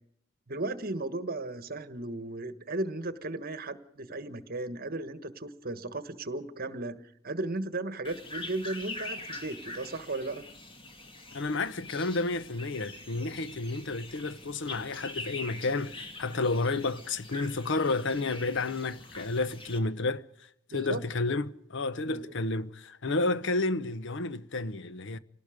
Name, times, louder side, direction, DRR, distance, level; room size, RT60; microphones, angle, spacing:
voice 1, 0.5-7.0 7.2-10.4 20.7-21.0 22.0-22.3, right 2 dB, 45° right, 1.4 m, -35 dB
sound 1, 8.0-19.8, left 2 dB, 25° left, 2.4 m, -44 dB
voice 2, 11.3-20.2 20.7-25.2, left 3 dB, 65° left, 0.9 m, -31 dB
28.0 x 18.5 x 5.1 m
head